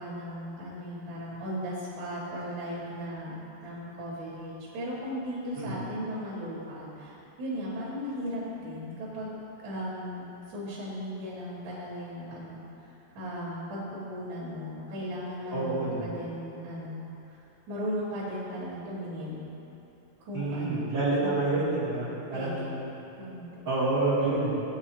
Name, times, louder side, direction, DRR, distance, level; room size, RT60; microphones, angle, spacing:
voice 1, 0.0-3.3 3.6-9.3 9.6-10.2 10.5-12.6 13.2-17.0 17.7-19.4 20.3-21.8 22.3-22.7 23.2-23.6, equal, 60° right, -15 dB, 5.3 m, -36 dB
voice 2, 15.5-16.1 20.3-23.0 23.6-24.5, right 2 dB, 25° right, -10 dB, 3.3 m, -28 dB
19.5 x 9.3 x 3.3 m, 2.9 s
omnidirectional pair, 5.7 m